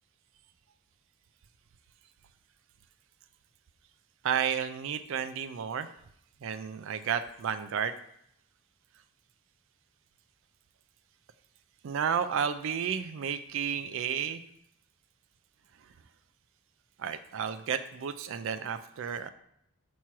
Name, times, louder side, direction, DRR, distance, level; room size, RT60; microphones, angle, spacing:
voice 1, 4.2-5.9 6.4-7.9 11.8-14.4 17.0-19.3, right 7 dB, 60° right, 10 dB, 0.4 m, -32 dB
5.9 x 3.1 x 5.5 m, 0.73 s
head